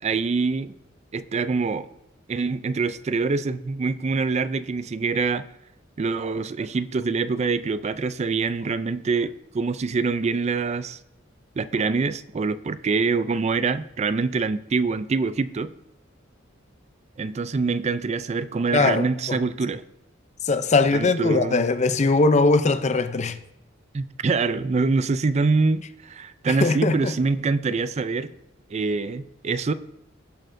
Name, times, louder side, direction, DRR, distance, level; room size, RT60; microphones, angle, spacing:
voice 1, 0.0-0.8 1.1-1.9 2.3-5.4 6.0-11.0 11.6-15.7 17.2-19.8 20.9-21.6 23.9-28.3 28.7-29.7, right 4 dB, 35° right, 0.4 m, -25 dB
voice 2, 18.7-19.4 20.4-23.4 26.5-27.1, left 3 dB, 35° left, 0.5 m, -21 dB
17.5 x 6.4 x 2.6 m
head